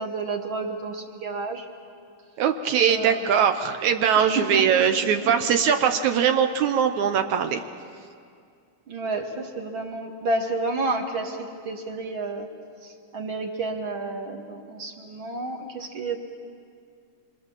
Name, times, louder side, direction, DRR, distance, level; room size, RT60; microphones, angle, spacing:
voice 1, 0.0-1.7 2.9-3.2 4.2-5.1 8.9-12.5 12.8-16.2, right 2 dB, 45° right, 2 dB, 2.1 m, -30 dB
voice 2, 2.4-7.6, right 8 dB, 70° right, 7 dB, 2.0 m, -21 dB
27.5 x 24.5 x 7.2 m, 2.3 s
omnidirectional pair, 3.9 m